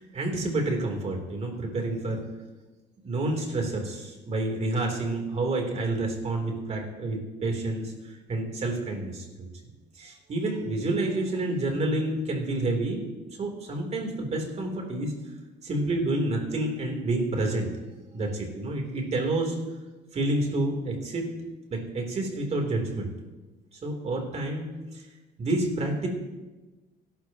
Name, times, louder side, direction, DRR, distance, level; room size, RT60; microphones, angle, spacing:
voice 1, 0.0-2.2 3.0-9.5 10.0-13.1 13.4-15.1 15.6-17.7 18.1-19.6 20.1-21.3 21.7-23.1 23.7-25.1 25.4-26.1, right 2 dB, 40° right, 2 dB, 3.5 m, -29 dB
22.0 x 12.0 x 3.0 m, 1.2 s
cardioid pair, 110°, 17 cm